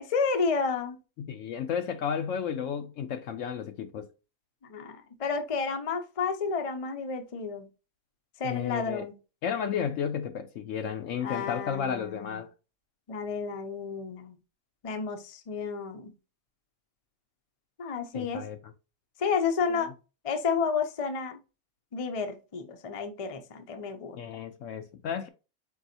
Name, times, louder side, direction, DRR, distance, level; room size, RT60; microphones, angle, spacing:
voice 1, 0.1-1.0 4.7-7.7 8.4-9.1 11.2-12.4 13.1-14.4 14.8-16.1 17.8-18.5 19.2-19.9 20.2-21.4 21.9-24.2, left 5 dB, 40° left, 0.5 m, -31 dB
voice 2, 1.2-4.1 8.4-9.1 9.4-12.5 18.1-18.6 19.7-19.9 24.2-25.3, left 7 dB, 70° left, 0.9 m, -33 dB
4.6 x 3.8 x 2.7 m
omnidirectional pair, 1.5 m